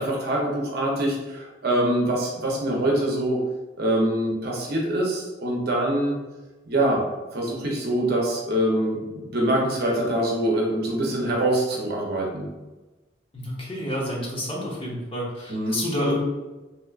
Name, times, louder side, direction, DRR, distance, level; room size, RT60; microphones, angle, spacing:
voice 1, 0.0-3.4 3.8-6.2 6.7-7.0 7.3-12.5 15.5-15.8, right 1 dB, 60° right, -2 dB, 0.7 m, -24 dB
voice 2, 13.3-16.2, left 1 dB, 30° left, -4 dB, 0.9 m, -29 dB
3.4 x 3.0 x 2.4 m, 1.1 s
head